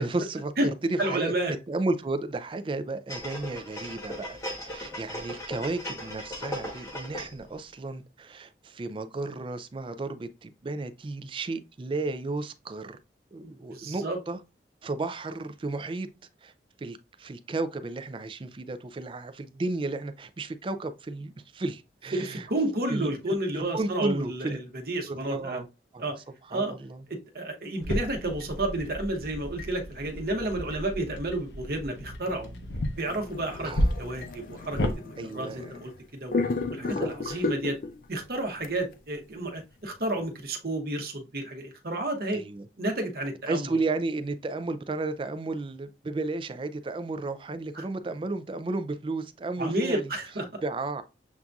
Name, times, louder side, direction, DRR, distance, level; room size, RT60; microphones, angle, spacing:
voice 1, 0.0-1.3 1.7-13.0 13.3-14.4 14.8-16.1 16.4-16.5 16.8-22.5 22.9-24.6 25.1-25.7 25.9-26.0 26.4-27.0 33.6-33.8 35.2-35.7 36.8-37.5 42.3-42.7 43.5-50.0 50.6-51.0, right 3 dB, 30° right, 0.3 m, -33 dB
voice 2, 1.0-1.5 13.4-14.2 22.1-25.6 26.0-26.2 26.5-26.7 27.3-32.5 33.0-33.7 34.0-36.3 36.7-37.8 38.1-42.4 42.8-43.7 47.8-47.9 49.6-50.5, right 1 dB, 55° right, 0.9 m, -31 dB
sound 1, 3.1-7.5 7.9-8.0, left 1 dB, 20° left, 1.0 m, -38 dB
sound 2, 27.8-34.9, equal, 75° left, 0.7 m, -33 dB
sound 3, 33.0-36.0 36.3-38.0 38.6-38.8, left 3 dB, 50° left, 0.4 m, -33 dB
7.1 x 2.6 x 2.3 m
head